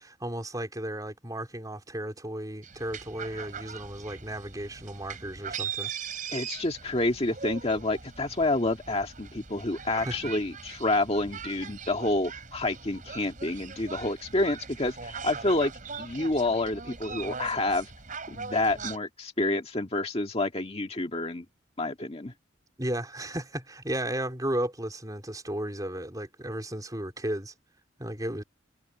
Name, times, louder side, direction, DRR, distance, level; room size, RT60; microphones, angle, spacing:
voice 1, 0.0-6.1 10.0-10.3 22.8-27.5 28.0-28.4, right 1 dB, 20° right, 3.8 m, -34 dB
sound 1, 2.6-19.0, right 6 dB, 40° right, 5.1 m, -40 dB
voice 2, 6.3-15.7 16.0-17.9 18.3-21.4 21.8-22.3, left 2 dB, 30° left, 1.8 m, -28 dB
head